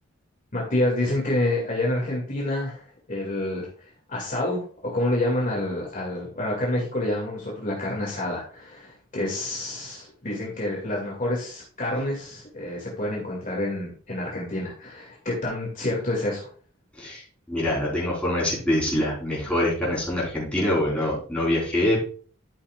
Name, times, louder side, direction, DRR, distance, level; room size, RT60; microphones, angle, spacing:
voice 1, 0.5-16.5, left 1 dB, 40° left, -3 dB, 2.2 m, -28 dB
voice 2, 17.0-22.1, left 1 dB, 5° left, -6 dB, 3.9 m, -25 dB
13.0 x 5.8 x 2.4 m, 0.43 s
head